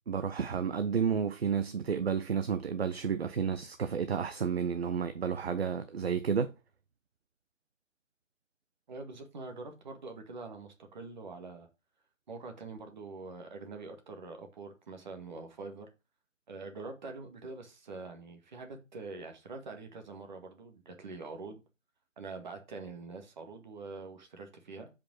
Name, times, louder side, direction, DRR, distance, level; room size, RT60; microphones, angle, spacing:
voice 1, 0.1-6.5, right 6 dB, 50° right, 0.8 m, -31 dB
voice 2, 8.9-11.7 12.3-15.9 16.5-21.6 22.2-24.9, right 3 dB, 35° right, 1.9 m, -44 dB
7.0 x 5.3 x 6.2 m
figure-of-eight pair, 160°, 39 cm